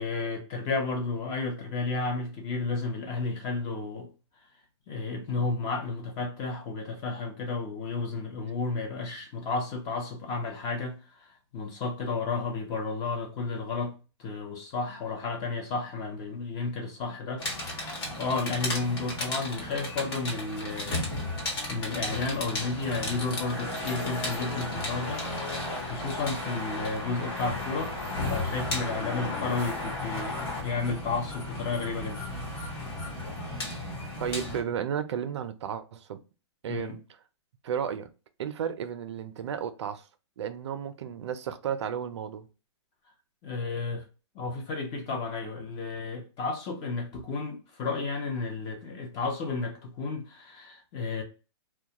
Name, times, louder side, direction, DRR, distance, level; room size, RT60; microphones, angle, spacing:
voice 1, 0.0-4.1 4.9-13.9 14.2-17.4 18.2-21.0 21.5-28.0 28.3-32.2 36.7-37.0 43.4-44.0 44.3-51.2, left 3 dB, 25° left, 0.6 m, -32 dB
sound 1, 17.4-34.6, left 2 dB, 55° left, 1.2 m, -34 dB
voice 2, 34.2-36.2 36.6-37.0 37.6-38.1 38.4-40.0 40.4-42.5, right 8 dB, 70° right, 0.4 m, -33 dB
2.2 x 2.2 x 2.8 m
hypercardioid pair, 145°, 15 cm